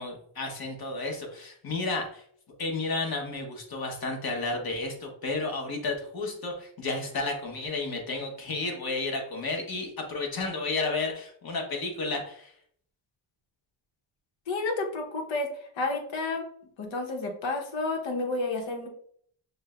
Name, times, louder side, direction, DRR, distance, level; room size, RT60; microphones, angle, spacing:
voice 1, 0.0-2.2 2.6-12.5, left 3 dB, 50° left, 2 dB, 1.2 m, -32 dB
voice 2, 14.5-16.4 16.8-18.9, left 3 dB, 70° left, 2 dB, 1.1 m, -31 dB
6.2 x 2.2 x 2.4 m, 0.62 s
cardioid pair, 100°, 47 cm